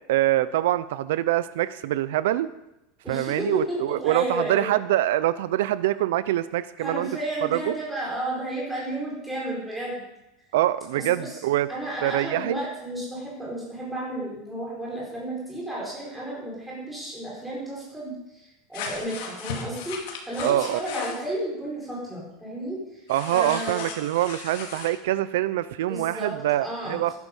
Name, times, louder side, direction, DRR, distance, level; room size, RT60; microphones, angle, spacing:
voice 1, 0.1-2.5 3.1-7.1 7.5-7.7 10.5-11.7 12.0-12.6 20.4-20.8 23.1-27.1, right 14 dB, 85° right, 15 dB, 0.5 m, -24 dB
voice 2, 3.0-4.7 6.8-10.0 11.1-11.4 11.7-20.0 20.2-23.0 23.3-23.9 25.9-27.1, right 1 dB, 5° right, -5 dB, 4.7 m, -32 dB
sound 1, 18.7-21.3 23.1-24.9, left 6 dB, 70° left, 2.4 m, -36 dB
12.5 x 11.0 x 5.4 m, 0.92 s
supercardioid pair, 165°, 0 cm